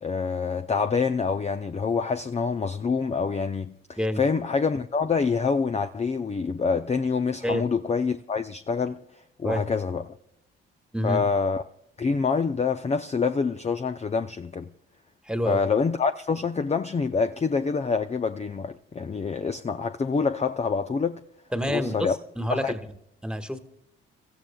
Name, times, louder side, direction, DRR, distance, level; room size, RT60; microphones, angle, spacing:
voice 1, 0.0-9.0 9.4-10.1 11.0-11.6 12.0-14.7 15.5-21.2 21.7-22.2 22.5-22.7, left 5 dB, 25° left, 0.6 m, -26 dB
voice 2, 10.9-11.3 15.3-15.6 21.5-22.8 23.2-23.6, equal, 5° right, 1.6 m, -28 dB
29.5 x 14.5 x 2.3 m
hypercardioid pair, 45°, 29 cm